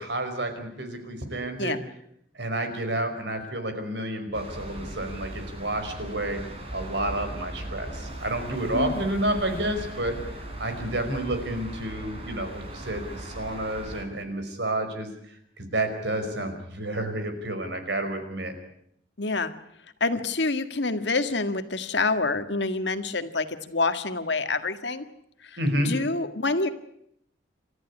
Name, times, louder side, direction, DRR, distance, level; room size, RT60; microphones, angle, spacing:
voice 1, 0.0-1.8 2.4-6.4 6.7-15.1 15.6-18.5 25.6-25.9, right 1 dB, 65° right, 7 dB, 5.2 m, -30 dB
sound 1, 4.3-14.1, right 1 dB, 35° right, 4.9 m, -38 dB
voice 2, 8.7-9.0 19.2-19.5 20.0-25.0 25.4-26.7, left 3 dB, 65° left, 9 dB, 1.8 m, -27 dB
29.0 x 14.0 x 10.0 m, 0.73 s
head